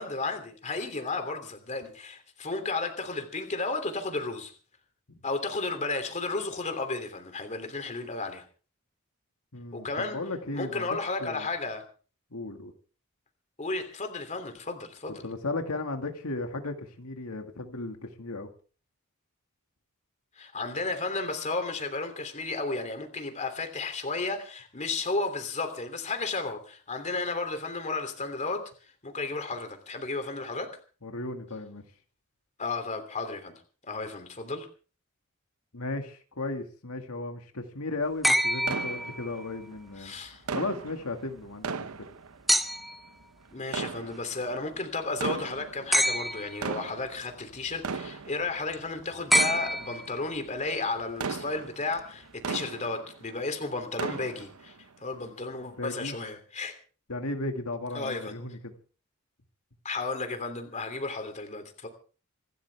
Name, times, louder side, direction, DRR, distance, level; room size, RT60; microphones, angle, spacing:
voice 1, 0.0-4.5 5.2-8.4 9.7-10.2 10.5-11.8 13.6-15.2 20.4-30.8 32.6-33.5 33.9-34.7 40.0-40.4 43.5-54.7 55.0-56.8 57.9-58.4 59.8-61.9, left 3 dB, 35° left, 7 dB, 3.0 m, -33 dB
voice 2, 9.5-10.9 11.2-11.5 12.3-12.7 15.1-18.5 31.0-31.8 35.7-40.1 40.5-41.9 55.8-56.2 57.1-58.7, left 2 dB, 90° left, 5 dB, 2.1 m, -35 dB
sound 1, 38.2-39.6 42.5-43.1 45.9-46.7 49.3-50.4 51.9-52.0, equal, ahead, 0.8 m, -26 dB
sound 2, 38.6-39.7 40.5-42.8 43.6-44.6 45.1-46.0 46.4-53.4 53.7-54.8 55.3-55.4 56.0-56.1, right 4 dB, 80° right, 0.9 m, -37 dB
26.5 x 13.0 x 3.5 m, 0.39 s
head